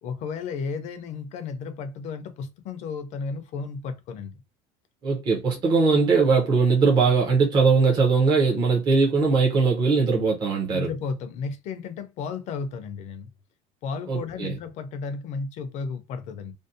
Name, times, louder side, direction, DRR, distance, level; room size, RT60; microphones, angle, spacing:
voice 1, 0.0-4.3 5.5-5.7 10.7-13.3 13.8-16.5, left 5 dB, 40° left, 0.5 m, -33 dB
voice 2, 5.0-10.9 14.1-14.5, right 4 dB, 25° right, 0.5 m, -20 dB
2.6 x 2.0 x 2.5 m
cardioid pair, 175°, 18 cm